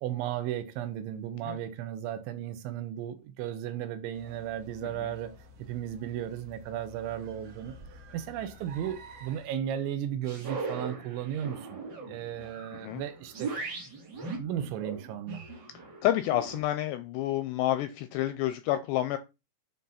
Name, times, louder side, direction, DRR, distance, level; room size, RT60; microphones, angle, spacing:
voice 1, 0.0-5.4 5.7-7.8 8.1-11.8 12.1-13.5 14.3-15.4, right 10 dB, 80° right, 3.2 m, -35 dB
sound 1, 4.1-9.5, equal, 55° right, 2.5 m, -51 dB
voice 2, 4.8-5.1 12.8-13.0 16.0-19.2, left 13 dB, 85° left, 2.5 m, -29 dB
sound 2, 10.3-16.6, right 4 dB, 40° right, 1.6 m, -39 dB
9.1 x 3.9 x 5.6 m
omnidirectional pair, 5.5 m